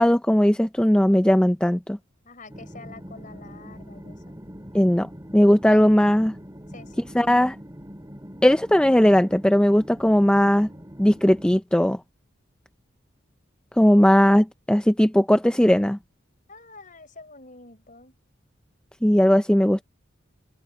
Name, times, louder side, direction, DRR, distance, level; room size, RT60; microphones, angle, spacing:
voice 1, 0.0-2.0 4.7-6.3 7.1-7.6 8.4-10.7 11.0-12.0 13.8-16.0 19.0-19.8, equal, 5° left, 0.4 m, -18 dB
voice 2, 2.2-4.5 5.7-5.9 6.7-7.1 16.5-18.2, left 3 dB, 40° left, 5.5 m, -46 dB
sound 1, 2.5-11.6, equal, 15° right, 4.3 m, -43 dB
head